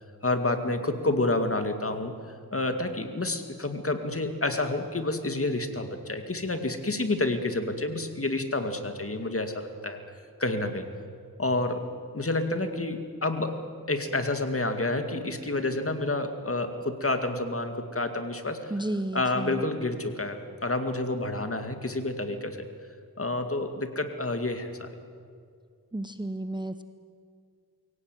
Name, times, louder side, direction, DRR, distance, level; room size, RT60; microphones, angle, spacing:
voice 1, 0.2-10.0 10.4-10.9 11.4-13.6 13.9-18.7 19.1-22.7 23.2-24.9, left 2 dB, 35° left, 7 dB, 2.4 m, -29 dB
voice 2, 18.7-19.6 25.9-26.8, right 1 dB, 10° right, 10 dB, 0.9 m, -32 dB
23.0 x 17.5 x 9.3 m, 2.2 s
wide cardioid pair, 60°, 37 cm